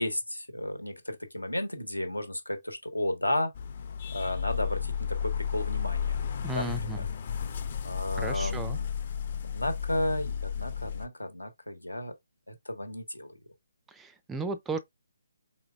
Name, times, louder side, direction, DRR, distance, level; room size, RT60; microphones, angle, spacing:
voice 1, 0.0-3.5 4.1-6.2 6.5-7.0 7.8-8.9 9.4-12.1 12.5-13.3, left 1 dB, 85° left, 1.2 m, -33 dB
sound 1, 3.6-11.1, left 7 dB, 40° left, 0.7 m, -33 dB
voice 2, 6.4-7.0 8.2-8.8 13.9-14.8, right 3 dB, 10° right, 0.4 m, -35 dB
4.4 x 3.9 x 2.3 m
figure-of-eight pair, 140°, 0 cm